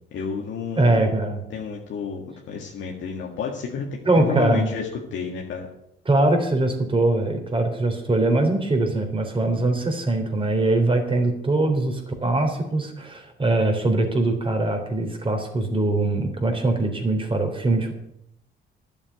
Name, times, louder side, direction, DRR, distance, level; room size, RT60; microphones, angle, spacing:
voice 1, 0.1-1.1 1.5-3.8 4.1-5.7, left 6 dB, 75° left, -1 dB, 1.9 m, -30 dB
voice 2, 0.8-1.4 4.1-4.7 6.1-17.9, right 2 dB, 25° right, 4 dB, 3.5 m, -22 dB
11.0 x 7.2 x 9.3 m, 0.77 s
cardioid pair, 90°, 20 cm